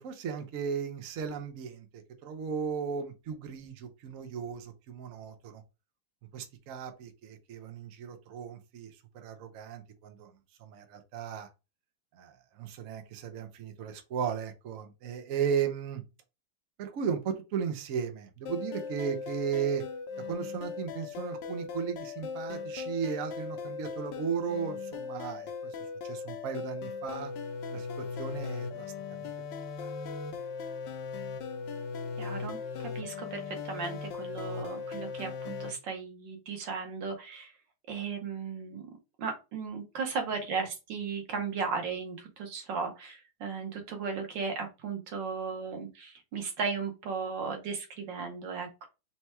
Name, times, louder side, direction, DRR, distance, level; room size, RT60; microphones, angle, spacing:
voice 1, 0.0-5.6 6.3-10.3 10.6-11.5 12.1-16.0 16.8-19.8 20.2-25.7 26.0-27.3 27.7-28.9 29.2-29.3 29.8-29.9, right 7 dB, 80° right, 0.7 m, -36 dB
sound 1, 18.5-35.7, left 5 dB, 70° left, 1.2 m, -38 dB
voice 2, 32.2-37.5 37.9-38.8 39.2-48.9, right 5 dB, 65° right, 1.5 m, -36 dB
4.4 x 2.3 x 4.2 m
omnidirectional pair, 2.3 m